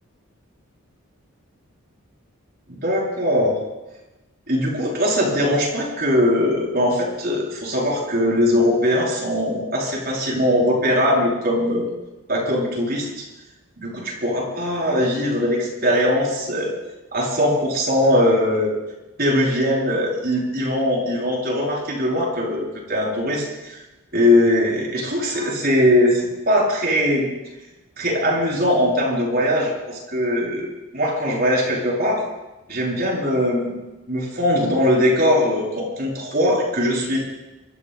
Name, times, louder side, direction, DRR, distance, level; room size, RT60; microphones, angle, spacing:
voice 1, 2.7-3.5 4.5-11.9 12.3-13.2 13.8-16.7 17.1-18.7 19.2-23.8 24.1-27.3 28.0-32.2 32.7-33.7 34.1-37.2, left 1 dB, 45° right, -3 dB, 7.6 m, -20 dB
26.0 x 23.5 x 2.2 m, 1.0 s
head